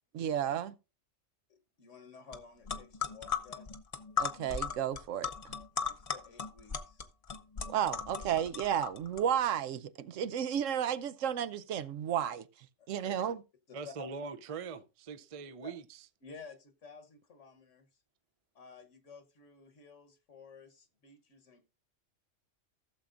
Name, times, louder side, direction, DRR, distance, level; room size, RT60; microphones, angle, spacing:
voice 1, 0.1-0.7 4.2-5.3 7.7-12.4 12.9-13.4, right 9 dB, 75° right, 1.0 m, -32 dB
voice 2, 1.5-3.7 5.9-7.0 12.8-13.2 13.7-14.1 15.6-15.7 16.2-17.9 18.5-21.6, left 5 dB, 70° left, 1.5 m, -53 dB
sound 1, 2.3-2.4 2.7-9.2, left 6 dB, 35° left, 0.6 m, -37 dB
voice 3, 13.7-16.1, right 5 dB, 40° right, 0.5 m, -42 dB
15.5 x 7.1 x 2.5 m
omnidirectional pair, 1.3 m